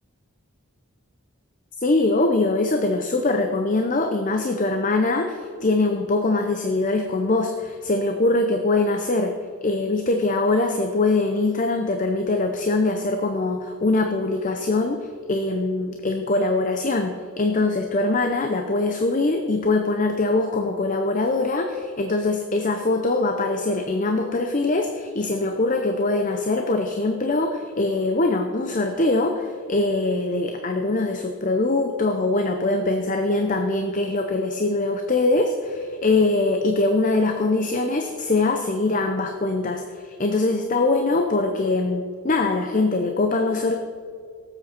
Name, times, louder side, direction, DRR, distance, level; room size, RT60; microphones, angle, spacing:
voice 1, 1.8-43.8, left 2 dB, 35° left, 5 dB, 0.6 m, -23 dB
17.5 x 7.8 x 4.3 m, 2.1 s
head